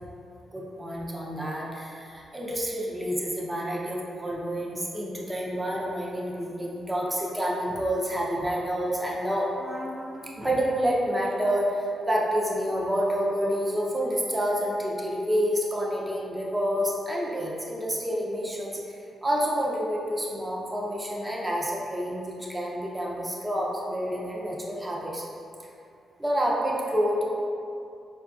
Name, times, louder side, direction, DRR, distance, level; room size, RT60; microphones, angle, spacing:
voice 1, 0.5-25.2 26.2-27.2, equal, 15° right, -4 dB, 0.6 m, -28 dB
3.7 x 2.4 x 2.5 m, 2.5 s
cardioid pair, 60°, 0 cm